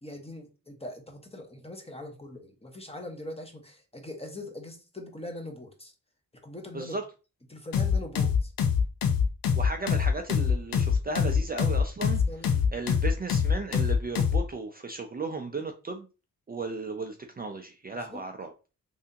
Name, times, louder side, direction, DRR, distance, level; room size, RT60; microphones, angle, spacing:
voice 1, 0.0-5.9 6.4-7.0 7.5-8.5 12.1-12.7 18.1-18.2, left 1 dB, 15° left, 2 dB, 1.1 m, -42 dB
voice 2, 6.7-7.0 9.6-16.1 16.5-18.5, right 3 dB, 25° right, 4 dB, 0.5 m, -35 dB
sound 1, 7.7-14.4, left 6 dB, 70° left, 0.7 m, -24 dB
3.3 x 2.7 x 2.8 m, 0.31 s
supercardioid pair, 50°, 35 cm